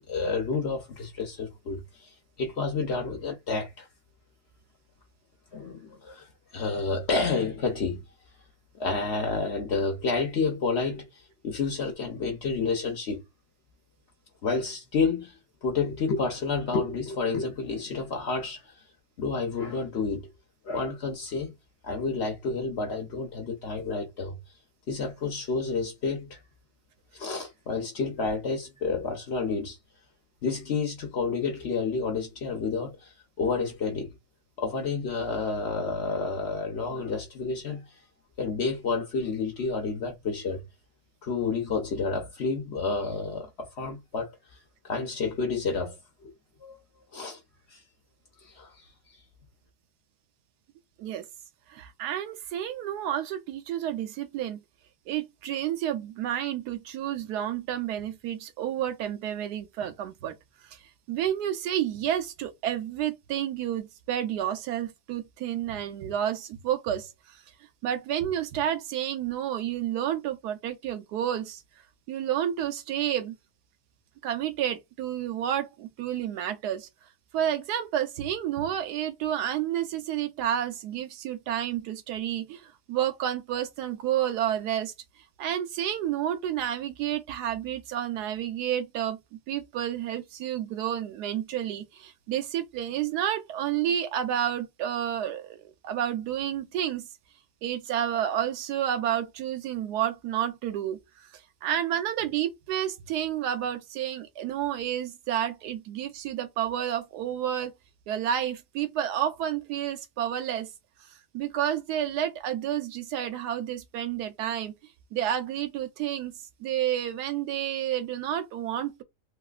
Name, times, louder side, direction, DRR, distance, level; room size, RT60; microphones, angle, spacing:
voice 1, 0.1-1.8 2.4-3.9 5.5-6.3 6.5-8.0 8.7-11.0 11.4-13.2 14.4-15.3 15.6-18.6 19.2-20.3 20.6-21.5 21.8-24.4 24.9-26.4 27.1-29.8 30.4-33.1 33.4-34.1 34.6-37.9 38.4-40.6 41.2-44.3 44.8-45.9 46.2-46.3 46.6-46.8 47.1-47.4 47.7-47.8 48.4-48.7, left 4 dB, 55° left, 0.8 m, -29 dB
voice 2, 51.7-54.6 55.1-60.3 60.7-60.8 61.1-67.4 67.8-71.6 72.1-73.3 74.2-76.9 77.3-84.9 85.4-89.2 89.5-97.1 97.6-101.3 101.6-107.7 108.1-110.7 111.3-114.7 115.1-116.3 116.6-119.0, right 10 dB, 90° right, 1.2 m, -30 dB
3.3 x 2.9 x 2.3 m
omnidirectional pair, 1.7 m